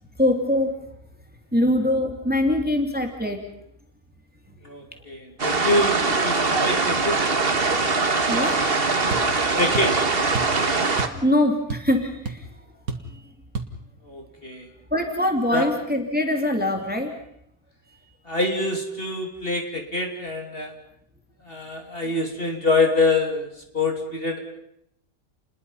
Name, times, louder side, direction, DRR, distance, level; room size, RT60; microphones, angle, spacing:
voice 1, 0.2-0.8 1.5-3.4 8.3-8.6 11.0-12.4 13.1-13.2 14.9-17.2, left 1 dB, 5° right, 3 dB, 2.8 m, -23 dB
voice 2, 4.6-7.2 9.6-9.9 14.1-14.7 15.5-15.7 18.2-20.7 21.4-23.5 23.7-24.4, left 2 dB, 40° left, 2 dB, 3.2 m, -25 dB
sound 1, 5.4-11.1, right 3 dB, 40° right, 1.8 m, -22 dB
sound 2, 9.1-9.3 9.7-10.0 10.3-10.6 11.0-11.2 11.5-12.0 12.3-12.4 12.9-13.1 13.5-13.7, right 4 dB, 70° right, 2.2 m, -30 dB
30.0 x 21.0 x 5.6 m, 0.72 s
omnidirectional pair, 1.6 m